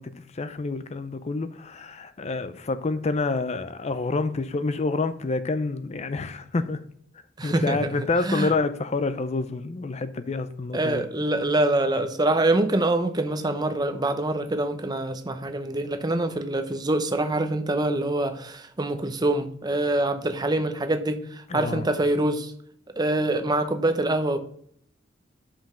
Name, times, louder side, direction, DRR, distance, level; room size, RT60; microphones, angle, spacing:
voice 1, 0.0-6.8 7.4-11.0 21.5-21.9, left 3 dB, 35° left, 0.5 m, -28 dB
voice 2, 7.4-7.8 8.2-8.5 10.7-22.5 23.0-24.4, right 2 dB, 20° right, 0.7 m, -25 dB
5.8 x 5.2 x 5.4 m
head